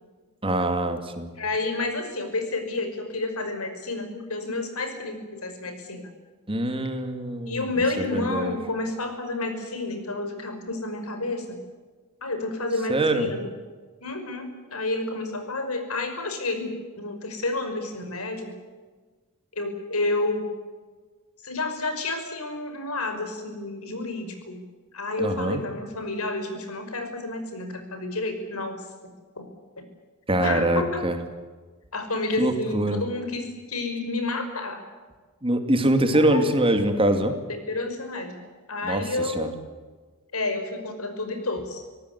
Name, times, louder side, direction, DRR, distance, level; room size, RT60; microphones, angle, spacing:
voice 1, 0.4-1.3 6.5-7.6 8.0-8.6 12.9-13.3 25.2-25.6 30.3-31.2 32.4-33.0 35.4-37.3 38.8-39.5, right 1 dB, 25° right, 7 dB, 2.5 m, -24 dB
voice 2, 1.3-6.1 7.5-11.6 12.2-13.4 14.0-18.5 19.6-20.5 21.4-24.6 24.9-28.8 29.4-29.5 30.4-31.1 31.9-34.8 36.1-36.6 37.5-38.4 38.7-39.5 40.3-41.8, left 2 dB, 85° left, 7 dB, 5.5 m, -30 dB
25.5 x 18.0 x 8.3 m, 1.4 s
head